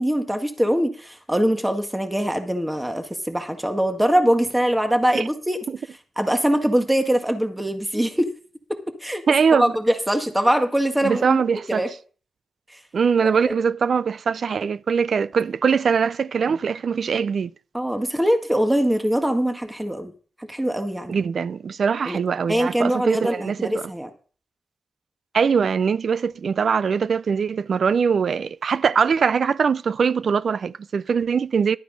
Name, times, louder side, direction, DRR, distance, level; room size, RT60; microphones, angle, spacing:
voice 1, 0.0-5.6 6.2-8.3 8.7-9.2 9.5-11.4 11.7-11.9 13.2-13.5 17.7-20.1 20.5-21.2 22.1-22.2 22.5-24.1, equal, 10° right, 1.9 m, -22 dB
voice 2, 9.3-9.7 11.0-11.8 12.9-17.5 21.1-23.9 25.3-31.8, right 6 dB, 65° right, 0.4 m, -22 dB
12.0 x 9.2 x 4.0 m
supercardioid pair, 45°, 0 cm